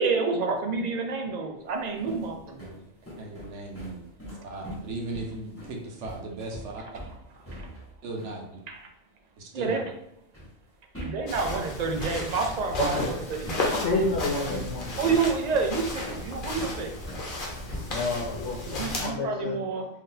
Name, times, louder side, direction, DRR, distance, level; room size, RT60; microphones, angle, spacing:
voice 1, 0.0-2.7 7.5-7.7 8.7-8.8 9.5-9.8 11.0-13.7 15.0-16.9 18.8-19.9, right 4 dB, 60° right, 3 dB, 0.4 m, -28 dB
sound 1, 1.7-8.4 10.3-10.6 10.9-17.3 17.7-18.6, equal, 10° left, 1.2 m, -42 dB
voice 2, 3.2-4.0 4.4-6.8 8.0-8.6 9.4-9.8, right 2 dB, 80° right, 0 dB, 1.0 m, -37 dB
sound 2, 11.3-19.1, left 2 dB, 50° left, 0.9 m, -34 dB
voice 3, 12.7-13.1 13.7-15.2 17.9-19.6, left 3 dB, 80° left, -4 dB, 1.0 m, -29 dB
2.7 x 2.7 x 3.8 m, 0.77 s
omnidirectional pair, 1.2 m